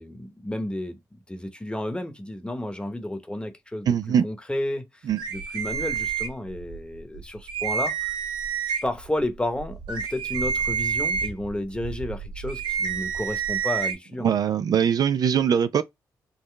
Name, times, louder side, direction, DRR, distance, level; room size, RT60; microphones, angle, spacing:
voice 1, 0.0-4.0 4.2-4.9 5.3-8.2 8.8-14.3, left 1 dB, 15° left, 0.9 m, -32 dB
voice 2, 3.9-4.2 5.1-5.2 14.2-15.8, right 8 dB, 60° right, 0.3 m, -21 dB
sound 1, 5.2-6.8 7.1-7.2 7.5-9.0 9.6-13.9, right 6 dB, 85° right, 0.9 m, -28 dB
3.8 x 2.0 x 3.2 m
supercardioid pair, 55°, 8 cm